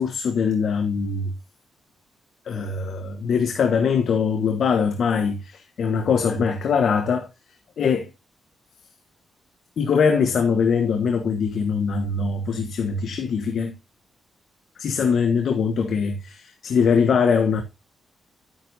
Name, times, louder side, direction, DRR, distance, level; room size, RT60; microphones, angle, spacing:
voice 1, 0.0-1.3 2.4-7.3 7.8-8.1 9.8-13.7 14.8-17.6, left 6 dB, 65° left, 1.2 m, -22 dB
11.0 x 9.2 x 2.7 m
cardioid pair, 120°, 0 cm